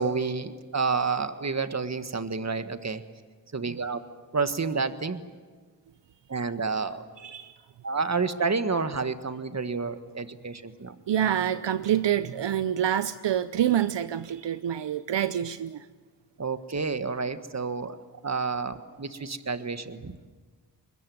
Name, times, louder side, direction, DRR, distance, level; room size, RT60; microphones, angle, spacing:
voice 1, 0.0-3.0 3.5-4.0 4.3-5.2 6.3-7.0 7.8-11.0 16.4-18.0 18.2-20.2, right 4 dB, 40° right, 10 dB, 1.7 m, -29 dB
voice 2, 7.2-7.5 11.1-15.8, right 10 dB, 75° right, 13 dB, 0.8 m, -26 dB
21.5 x 21.5 x 9.4 m, 1.5 s
cardioid pair, 60°, 43 cm